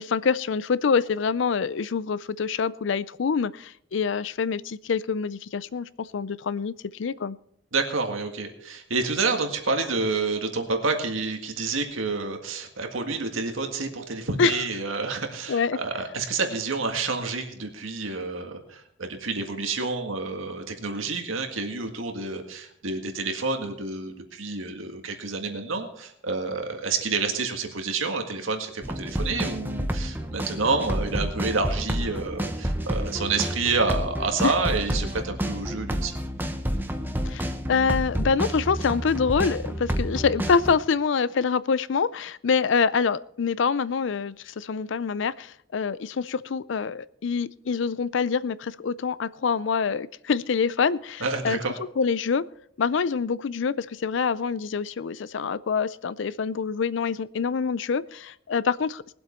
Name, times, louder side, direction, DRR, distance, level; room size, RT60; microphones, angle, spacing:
voice 1, 0.0-7.4 14.4-14.6 15.5-15.8 34.4-34.5 37.2-51.6 52.0-52.4 52.8-59.0, left 5 dB, 70° left, 19 dB, 0.4 m, -26 dB
voice 2, 7.7-36.2 51.2-51.7, right 3 dB, 85° right, 4 dB, 1.8 m, -29 dB
sound 1, 28.8-40.8, equal, 10° right, 0.8 m, -29 dB
20.0 x 7.9 x 4.4 m, 0.69 s
head